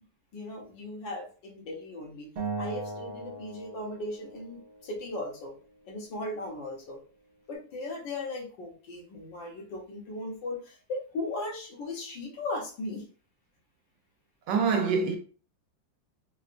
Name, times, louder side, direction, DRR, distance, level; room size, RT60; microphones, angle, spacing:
voice 1, 0.3-2.3 2.6-5.5 5.8-7.0 7.5-13.0, left 2 dB, 75° left, 1.7 m, -37 dB
Acoustic guitar, 2.4-5.6, right 3 dB, 55° right, 0.6 m, -39 dB
voice 2, 14.5-15.2, right 5 dB, 75° right, 1.2 m, -25 dB
4.0 x 2.2 x 2.5 m
omnidirectional pair, 2.0 m